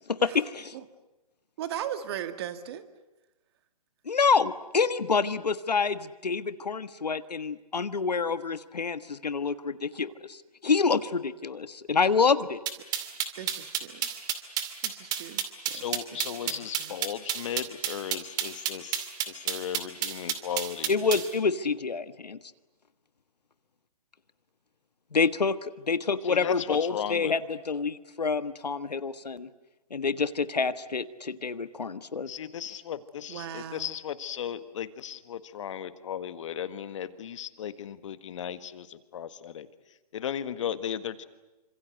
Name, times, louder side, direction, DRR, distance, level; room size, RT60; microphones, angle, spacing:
voice 1, 0.1-0.7 4.0-12.6 20.9-22.4 25.1-29.5 29.9-32.3, left 5 dB, 85° left, 13 dB, 1.5 m, -27 dB
voice 2, 1.6-2.8 13.4-14.1 14.8-15.9 16.1-17.0 33.3-33.9, right 10 dB, 40° right, 10 dB, 2.1 m, -38 dB
sound 1, 12.7-21.3, right 10 dB, 20° right, 2.4 m, -30 dB
voice 3, 15.7-21.2 26.2-27.3 32.3-39.7 40.1-41.3, left 9 dB, 50° left, 12 dB, 1.7 m, -36 dB
28.0 x 25.5 x 8.1 m, 1.0 s
hypercardioid pair, 140°, 20 cm